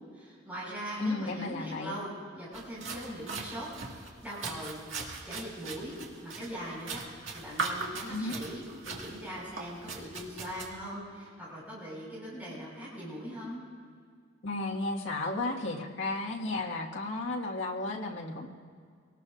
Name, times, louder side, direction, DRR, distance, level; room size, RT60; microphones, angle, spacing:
voice 1, 0.1-3.7 4.2-4.8 5.2-7.0 7.3-13.6, equal, 10° right, -7 dB, 5.4 m, -41 dB
voice 2, 1.0-1.9 8.1-8.4 14.4-18.5, left 2 dB, 70° left, -2 dB, 1.8 m, -33 dB
sound 1, 2.5-10.7, right 4 dB, 75° right, 2.1 m, -40 dB
24.5 x 19.0 x 2.6 m, 2.1 s
head